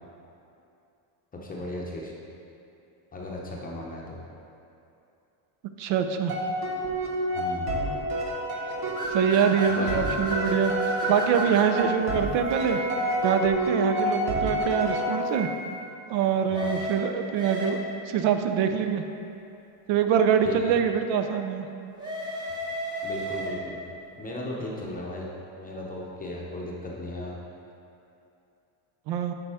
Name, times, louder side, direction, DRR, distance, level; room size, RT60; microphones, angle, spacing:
voice 1, 1.3-2.1 3.1-4.2 7.3-7.7 9.7-10.2 16.5-16.7 20.4-20.7 23.0-23.8 24.2-25.3 25.6-27.4, left 1 dB, 20° left, -3 dB, 0.6 m, -36 dB
voice 2, 5.8-6.3 9.1-10.7 11.1-12.8 13.2-15.5 16.1-17.8 18.1-19.0 19.9-21.7 29.1-29.3, right 7 dB, 70° right, 7 dB, 0.6 m, -24 dB
sound 1, 6.3-15.6, right 1 dB, 50° right, 1.2 m, -29 dB
sound 2, 9.0-11.7 16.5-18.1 22.0-23.8, right 1 dB, 10° right, 1.0 m, -33 dB
sound 3, 9.4-14.7 15.0-16.0, right 1 dB, 90° right, 1.5 m, -42 dB
8.5 x 5.3 x 3.5 m, 2.7 s
cardioid pair, 170°, 49 cm